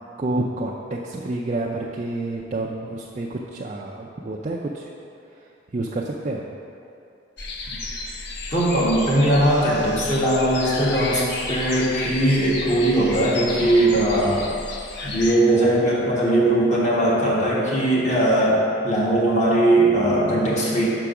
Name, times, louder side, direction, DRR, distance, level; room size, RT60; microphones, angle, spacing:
voice 1, 0.2-4.9 5.7-6.5, right 2 dB, 35° right, -3 dB, 0.4 m, -29 dB
sound 1, 7.4-15.4, left 3 dB, 60° left, 0.7 m, -32 dB
voice 2, 8.5-14.4 15.0-20.9, right 1 dB, 35° left, -6 dB, 1.5 m, -19 dB
6.1 x 4.9 x 5.7 m, 2.7 s
head